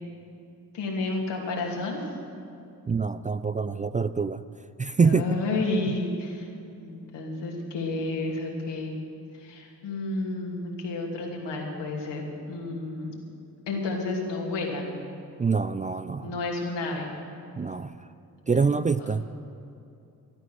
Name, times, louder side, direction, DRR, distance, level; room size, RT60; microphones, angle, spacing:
voice 1, 0.7-2.0 5.0-6.5 6.8-9.0 9.3-13.2 13.7-14.8 16.2-17.1 19.0-19.1, left 2 dB, 75° left, -1 dB, 2.8 m, -31 dB
voice 2, 2.9-4.4 4.8-5.2 15.4-16.4 17.6-18.1 18.5-19.3, right 5 dB, 20° right, 12 dB, 0.4 m, -25 dB
13.5 x 13.0 x 6.4 m, 2.6 s
supercardioid pair, 45°, 42 cm